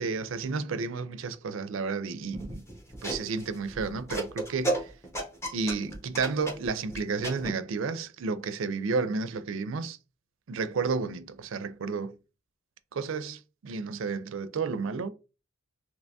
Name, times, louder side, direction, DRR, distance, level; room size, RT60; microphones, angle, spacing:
voice 1, 0.0-2.6 3.0-4.9 5.5-10.0 10.5-12.2 12.9-15.1, right 4 dB, 65° right, 0.4 m, -31 dB
sound 1, 2.3-7.5, right 1 dB, 15° left, 0.7 m, -34 dB
3.3 x 2.9 x 2.6 m
head